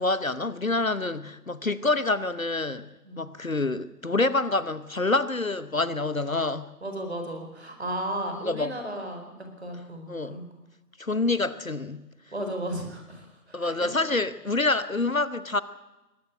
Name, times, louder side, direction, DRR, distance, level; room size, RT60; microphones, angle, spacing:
voice 1, 0.0-2.9 3.2-6.7 8.3-8.7 10.1-10.4 11.0-12.1 13.5-15.6, left 2 dB, 55° left, 15 dB, 1.0 m, -27 dB
voice 2, 6.8-9.3 9.6-10.5 12.3-13.9, right 1 dB, 40° right, 4 dB, 4.4 m, -34 dB
22.0 x 13.0 x 9.2 m, 1.0 s
figure-of-eight pair, 170°, 48 cm